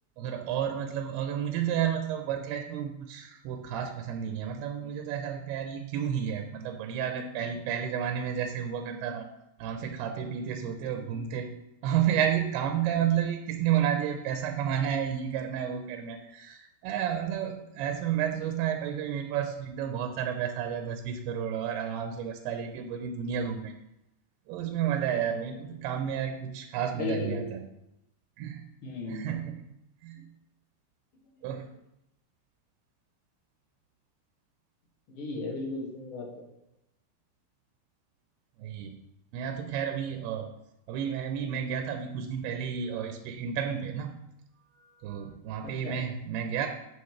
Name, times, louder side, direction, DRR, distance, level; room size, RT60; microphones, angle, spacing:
voice 1, 0.2-9.3 9.6-11.5 11.8-23.7 24.5-27.6 28.4-28.6 29.1-29.6 30.0-30.2 31.4-31.7 38.6-39.0 39.3-40.5 40.9-44.2 44.8-46.7, right 9 dB, 85° right, 5 dB, 2.7 m, -31 dB
voice 2, 27.0-27.6 28.8-29.2 35.1-36.5 45.8-46.0, left 3 dB, 40° left, -3 dB, 2.2 m, -35 dB
13.5 x 5.2 x 3.2 m, 0.85 s
omnidirectional pair, 4.5 m